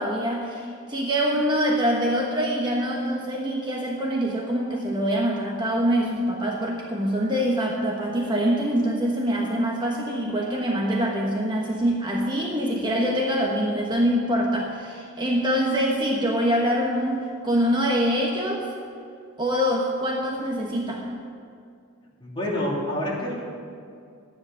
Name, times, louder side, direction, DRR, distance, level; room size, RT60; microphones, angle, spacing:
voice 1, 0.0-18.7 19.4-21.1, equal, 20° right, -1 dB, 1.2 m, -24 dB
voice 2, 22.2-23.4, left 1 dB, 25° left, -5 dB, 3.1 m, -27 dB
13.0 x 10.0 x 6.8 m, 2.3 s
head